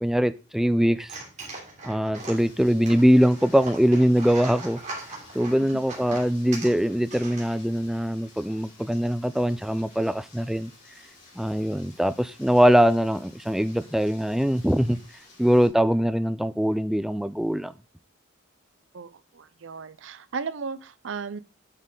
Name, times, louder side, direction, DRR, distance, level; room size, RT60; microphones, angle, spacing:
voice 1, 0.0-1.1 1.8-4.8 5.3-10.7 11.4-15.0 15.4-17.7, equal, ahead, 0.4 m, -22 dB
sound 1, 1.0-7.9, right 3 dB, 35° right, 3.2 m, -40 dB
Rain, 2.2-15.7, left 2 dB, 55° left, 4.3 m, -53 dB
voice 2, 18.9-21.4, right 5 dB, 65° right, 0.5 m, -35 dB
8.9 x 6.6 x 3.8 m
head